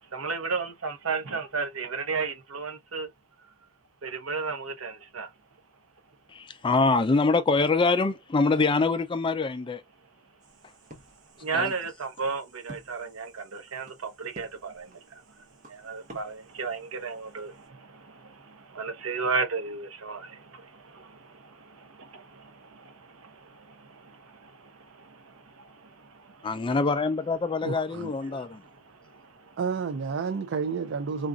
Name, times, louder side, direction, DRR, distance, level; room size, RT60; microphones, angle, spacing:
voice 1, 0.0-3.1 4.0-5.3 10.0-10.3 10.9-26.7 28.2-29.6, right 4 dB, 85° right, 0.9 m, -35 dB
voice 2, 6.3-9.8 11.5-11.7 26.4-28.6, left 3 dB, 25° left, 0.4 m, -24 dB
sound 1, 10.4-17.7, right 1 dB, 35° right, 0.9 m, -53 dB
voice 3, 27.6-28.1 29.6-31.3, right 5 dB, 60° right, 0.4 m, -30 dB
3.9 x 2.5 x 2.3 m
head